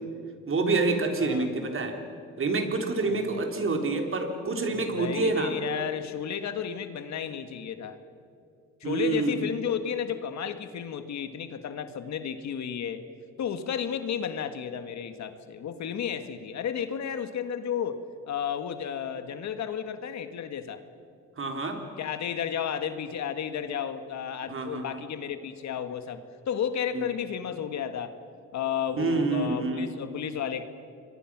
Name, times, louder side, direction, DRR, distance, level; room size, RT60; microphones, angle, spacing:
voice 1, 0.5-2.0 2.4-5.5 8.8-9.5 21.4-21.8 24.5-25.0 26.9-27.1 29.0-29.9, right 3 dB, 45° right, 4 dB, 3.5 m, -27 dB
voice 2, 1.2-1.6 3.1-3.4 4.7-8.0 8.8-13.0 13.4-20.8 22.0-28.1 28.5-30.6, left 8 dB, 65° left, 9 dB, 1.7 m, -33 dB
27.5 x 23.0 x 6.2 m, 2.5 s
cardioid pair, 90°, 30 cm